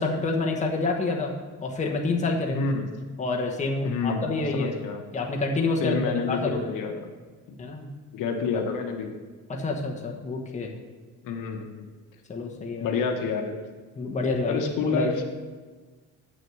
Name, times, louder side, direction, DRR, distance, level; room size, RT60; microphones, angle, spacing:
voice 1, 0.0-1.3 1.6-2.6 3.2-4.8 5.1-6.0 6.3-6.7 7.6-7.9 9.5-10.7 12.3-13.0 14.0-15.1, left 3 dB, 20° left, 0 dB, 1.3 m, -28 dB
voice 2, 2.5-2.9 3.8-5.0 5.8-7.1 7.5-7.6 8.1-9.1 11.2-11.9 12.8-13.6 14.5-15.2, left 5 dB, 70° left, 5 dB, 1.1 m, -28 dB
7.2 x 6.4 x 7.7 m, 1.4 s
cardioid pair, 145°, 33 cm